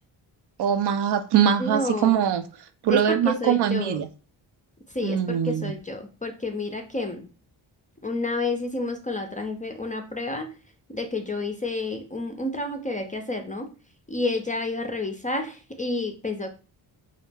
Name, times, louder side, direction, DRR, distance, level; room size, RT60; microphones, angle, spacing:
voice 1, 0.6-2.4 2.8-4.1 5.0-5.7, right 9 dB, 55° right, 0.5 m, -22 dB
voice 2, 1.6-2.2 2.9-4.0 4.9-7.3 8.0-10.5 10.9-13.7 14.1-16.6, left 2 dB, 15° left, 0.4 m, -30 dB
2.4 x 2.1 x 3.3 m
cardioid pair, 50°, 50 cm